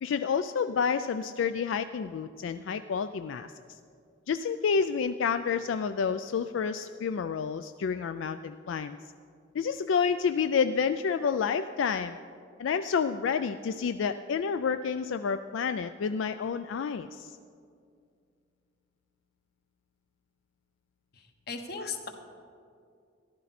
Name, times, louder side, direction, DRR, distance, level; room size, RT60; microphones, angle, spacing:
voice 1, 0.0-3.5 4.3-9.0 9.5-12.2 12.6-17.4, left 6 dB, 85° left, 10 dB, 0.3 m, -29 dB
voice 2, 21.1-22.1, left 5 dB, 55° left, 5 dB, 1.1 m, -37 dB
14.5 x 11.5 x 4.2 m, 2.3 s
head